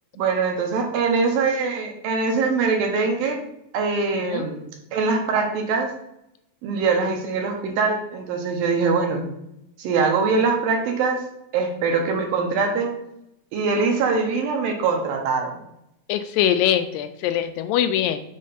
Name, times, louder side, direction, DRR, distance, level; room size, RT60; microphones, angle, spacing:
voice 1, 0.2-3.4 3.7-4.6 4.9-5.9 6.6-9.2 9.8-11.2 11.5-12.9 13.5-15.5, right 4 dB, 80° right, 2 dB, 2.8 m, -22 dB
voice 2, 16.1-18.2, left 10 dB, 80° left, 9 dB, 2.0 m, -22 dB
6.4 x 4.2 x 5.5 m, 0.82 s
omnidirectional pair, 4.3 m